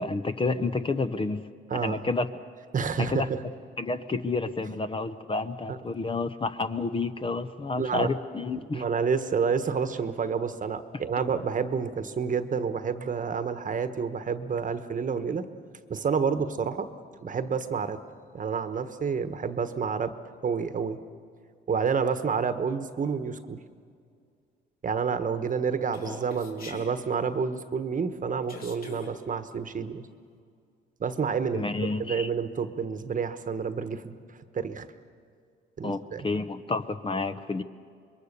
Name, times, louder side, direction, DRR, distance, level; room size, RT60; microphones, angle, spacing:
voice 1, 0.0-2.3 3.0-3.3 3.8-8.8 31.5-32.3 35.8-37.6, left 3 dB, 25° left, 10 dB, 0.9 m, -30 dB
voice 2, 1.7-2.1 2.7-3.4 5.7-5.8 7.8-8.1 8.7-15.5 15.9-16.9 17.2-18.0 18.3-20.1 20.4-21.0 21.7-23.6 24.8-30.1 31.0-31.6 32.0-34.9 35.8-36.2, right 6 dB, 40° right, 10 dB, 1.2 m, -29 dB
Human voice, 25.9-26.9 28.5-29.1, left 2 dB, 50° left, 3.1 m, -42 dB
26.0 x 22.0 x 6.8 m, 2.2 s
cardioid pair, 90°, 20 cm